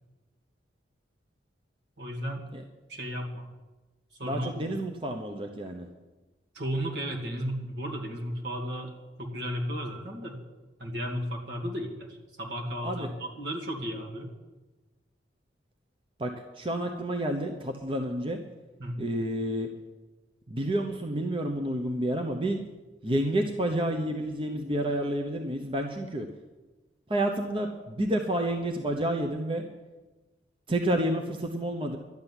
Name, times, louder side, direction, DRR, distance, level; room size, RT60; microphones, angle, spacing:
voice 1, 2.0-2.4 2.9-3.5 4.2-4.6 6.5-10.4 10.8-14.3 18.8-19.0, equal, 70° right, 0 dB, 2.4 m, -34 dB
voice 2, 4.2-5.9 12.8-13.1 16.2-18.4 19.0-19.7 20.5-22.6 23.0-26.3 27.1-29.6 30.7-32.0, right 1 dB, 30° right, 3 dB, 0.9 m, -29 dB
12.0 x 7.6 x 9.9 m, 1.2 s
head